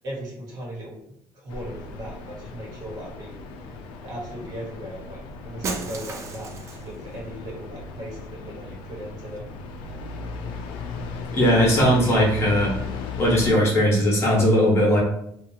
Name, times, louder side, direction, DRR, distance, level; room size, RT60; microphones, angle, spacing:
voice 1, 0.0-1.0 1.3-3.5 4.0-5.2 5.4-9.5, equal, 50° right, -4 dB, 1.2 m, -37 dB
sound 1, 1.5-13.5, left 4 dB, 90° left, 0.4 m, -36 dB
Shatter, 5.6-7.0, right 4 dB, 35° right, 0.4 m, -33 dB
voice 2, 11.3-12.7 13.2-15.0, equal, 35° left, -4 dB, 0.9 m, -19 dB
2.7 x 2.3 x 2.7 m, 0.72 s
cardioid pair, 145°, 8 cm